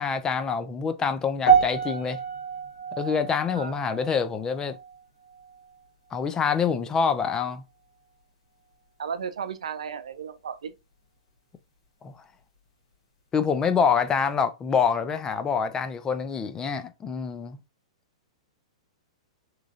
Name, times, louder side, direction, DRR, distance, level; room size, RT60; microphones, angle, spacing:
voice 1, 0.0-2.2 3.0-4.7 6.1-7.6 12.0-12.1 13.3-17.6, left 6 dB, 20° left, 0.4 m, -26 dB
sound 1, 1.5-5.9 6.1-6.5 7.2-7.3, right 6 dB, 55° left, 1.2 m, -27 dB
voice 2, 9.0-10.7, right 7 dB, 80° right, 0.4 m, -34 dB
3.0 x 2.3 x 2.4 m
hypercardioid pair, 120°, 3 cm